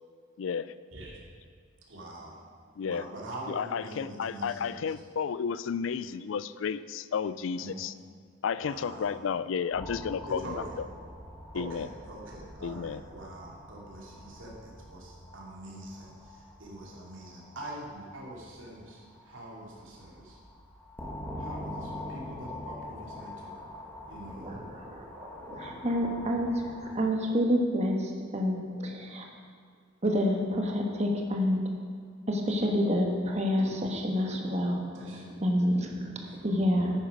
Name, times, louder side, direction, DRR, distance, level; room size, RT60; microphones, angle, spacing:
voice 1, 0.4-0.7 2.8-3.1 3.5-7.9 8.4-10.9 11.5-11.9 12.6-13.0, left 6 dB, 75° left, 15 dB, 0.4 m, -32 dB
voice 2, 1.9-2.4 2.8-4.8 7.5-7.8 8.6-9.2 10.3-10.8 11.5-20.4 21.4-23.5 24.1-24.6 34.9-35.4 36.1-36.7, right 1 dB, 80° right, -3 dB, 2.5 m, -44 dB
sound 1, 9.7-27.0, left 1 dB, 10° left, 1.4 m, -45 dB
voice 3, 24.3-29.3 30.0-31.6 32.3-36.9, equal, 35° right, 1 dB, 1.3 m, -29 dB
9.8 x 8.9 x 5.3 m, 2.1 s
head